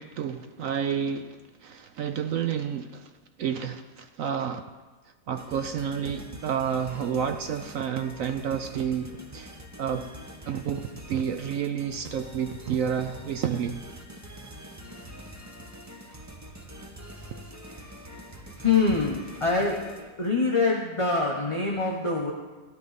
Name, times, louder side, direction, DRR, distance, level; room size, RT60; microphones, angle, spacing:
voice 1, 0.0-3.1 3.4-4.7 5.3-10.1 10.5-13.8 17.2-17.4, right 7 dB, 70° right, 8 dB, 0.8 m, -30 dB
sound 1, 5.3-20.4, equal, 20° right, 0.5 m, -45 dB
voice 2, 18.6-19.8 20.2-22.3, left 4 dB, 25° left, -1 dB, 0.7 m, -24 dB
13.0 x 12.0 x 4.1 m, 1.3 s
omnidirectional pair, 1.9 m